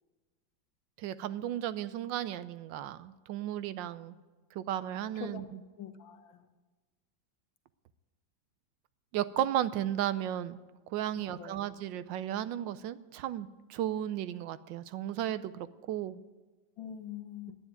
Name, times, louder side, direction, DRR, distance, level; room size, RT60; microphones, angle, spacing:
voice 1, 1.0-4.1 4.5-5.6 9.1-10.6 10.9-16.2, right 11 dB, 80° right, 14 dB, 1.3 m, -34 dB
voice 2, 5.8-6.5 11.2-11.6 16.8-17.6, left 9 dB, 90° left, 7 dB, 1.8 m, -44 dB
11.0 x 9.4 x 9.1 m, 1.3 s
omnidirectional pair, 2.0 m